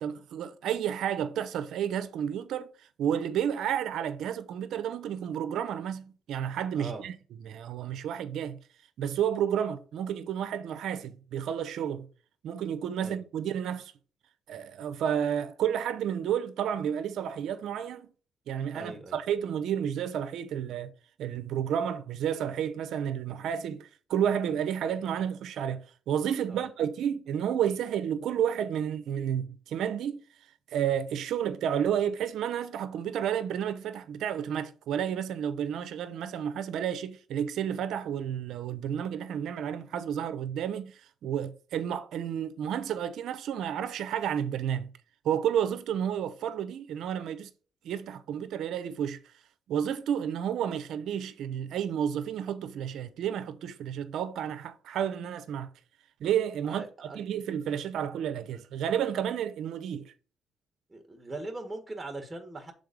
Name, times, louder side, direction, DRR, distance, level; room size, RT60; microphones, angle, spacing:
voice 1, 0.0-2.7 3.0-7.1 7.4-8.6 9.0-12.1 12.4-13.9 14.5-18.1 18.5-20.9 21.2-30.2 30.7-44.9 45.2-47.5 47.8-49.2 49.7-55.7 56.2-56.8 57.1-60.1, right 9 dB, 75° right, 0.8 m, -31 dB
voice 2, 18.7-19.2 26.5-26.6 56.7-57.2 60.9-62.7, right 2 dB, 20° right, 1.7 m, -40 dB
6.4 x 4.0 x 5.3 m
cardioid pair, 90°, 0 cm